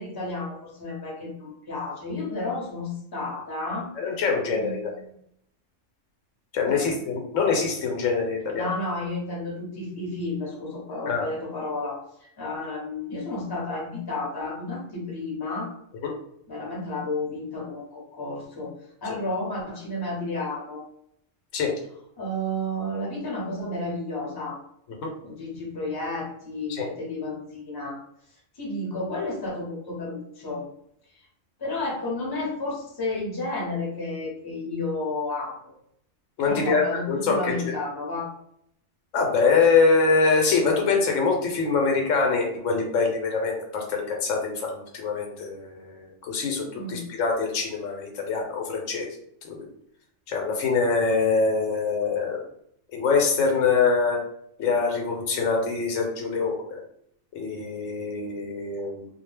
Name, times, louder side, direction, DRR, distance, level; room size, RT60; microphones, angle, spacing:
voice 1, 0.0-3.9 4.5-5.1 6.7-6.9 8.5-15.7 16.5-18.7 19.0-20.8 22.2-24.6 25.2-28.0 28.5-30.7 31.6-35.7 36.4-38.3 46.7-47.0, left 2 dB, 20° left, -4 dB, 0.7 m, -32 dB
voice 2, 4.0-4.9 6.5-8.7 11.1-11.3 15.9-16.1 19.1-19.2 21.5-21.7 25.0-25.1 26.7-26.9 36.4-37.6 39.1-49.1 49.5-49.6 50.3-52.4 52.9-54.2 54.6-56.8 57.3-59.1, left 4 dB, 80° left, 1 dB, 1.0 m, -24 dB
2.3 x 2.1 x 3.2 m, 0.71 s
omnidirectional pair, 1.3 m